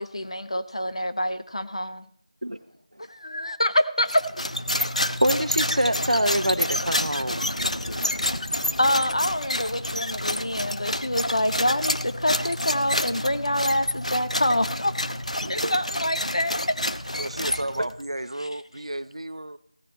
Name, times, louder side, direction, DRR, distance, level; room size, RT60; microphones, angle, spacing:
voice 1, 0.0-2.1 3.1-4.2 8.8-14.9 15.5-16.8, left 1 dB, 55° left, 1.1 m, -26 dB
sound 1, 4.1-18.0, left 1 dB, 75° left, 0.9 m, -28 dB
voice 2, 4.7-8.1 15.4-15.7, equal, 90° right, 0.9 m, -26 dB
sound 2, 5.0-11.1, right 1 dB, 5° right, 3.3 m, -51 dB
voice 3, 17.2-19.6, right 1 dB, 55° right, 0.6 m, -33 dB
16.5 x 11.0 x 4.3 m
figure-of-eight pair, 170°, 4 cm